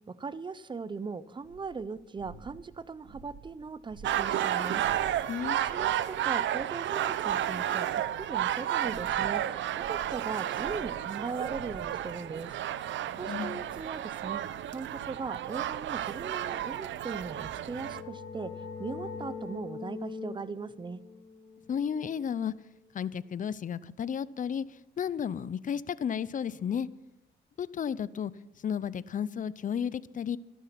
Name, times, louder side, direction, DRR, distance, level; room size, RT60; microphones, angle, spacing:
voice 1, 0.1-5.3 5.6-14.4 14.7-18.5 18.8-21.0, right 4 dB, 25° right, 17 dB, 0.7 m, -39 dB
sound 1, 1.4-5.6 8.1-12.2, right 4 dB, 85° right, 2.4 m, -51 dB
sound 2, 4.0-18.0, right 11 dB, 70° right, 0.7 m, -32 dB
voice 2, 5.3-5.6 13.0-13.6 21.7-22.5 22.9-26.9 27.6-28.3 28.6-30.4, left 8 dB, 40° left, 18 dB, 0.6 m, -33 dB
sound 3, 17.4-22.9, left 5 dB, 60° left, 3.6 m, -43 dB
13.0 x 12.0 x 5.9 m, 0.91 s
cardioid pair, 90°, 20 cm